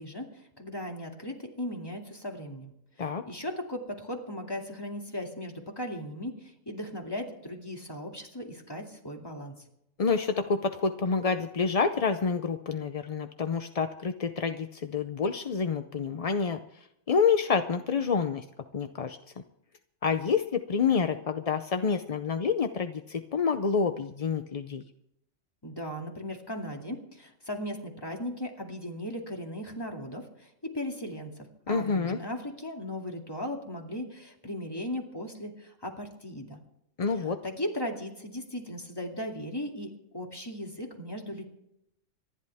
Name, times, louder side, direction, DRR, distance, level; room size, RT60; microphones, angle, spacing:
voice 1, 0.0-9.6 25.6-36.6 37.1-41.4, left 1 dB, 20° left, 1 dB, 2.4 m, -37 dB
voice 2, 10.0-16.6 17.1-18.4 18.7-19.2 20.0-24.8 31.7-32.2 37.0-37.4, left 5 dB, 40° left, 8 dB, 0.5 m, -28 dB
25.5 x 11.0 x 3.5 m, 0.80 s
omnidirectional pair, 1.3 m